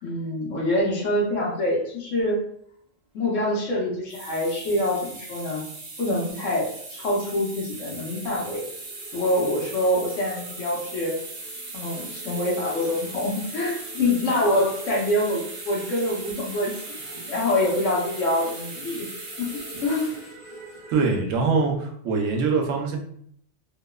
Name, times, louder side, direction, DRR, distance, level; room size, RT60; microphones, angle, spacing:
voice 1, 0.0-2.4 3.1-5.6 6.0-8.6 9.1-11.2 11.7-17.0 17.3-19.1 19.4-20.1, left 1 dB, 85° left, -2 dB, 1.1 m, -25 dB
sound 1, 4.0-21.2, right 2 dB, 50° right, 0.5 m, -38 dB
voice 2, 20.9-23.0, right 4 dB, 85° right, 2 dB, 0.9 m, -23 dB
2.8 x 2.0 x 2.2 m, 0.65 s
omnidirectional pair, 1.3 m